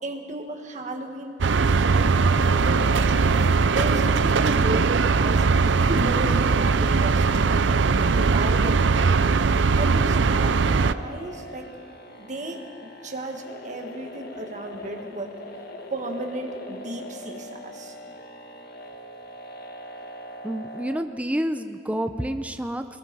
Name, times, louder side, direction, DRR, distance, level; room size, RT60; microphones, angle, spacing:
voice 1, 0.0-3.2 3.7-5.5 5.8-7.8 8.1-9.3 9.7-11.7 12.2-15.3 15.9-17.9, right 1 dB, 45° right, 3 dB, 1.8 m, -34 dB
sound 1, 1.4-10.9, right 4 dB, 90° right, 0.6 m, -20 dB
sound 2, 2.1-21.0, equal, 55° left, 1.6 m, -42 dB
voice 2, 20.4-22.9, equal, 10° right, 7 dB, 0.6 m, -28 dB
24.0 x 20.5 x 5.5 m, 2.4 s
head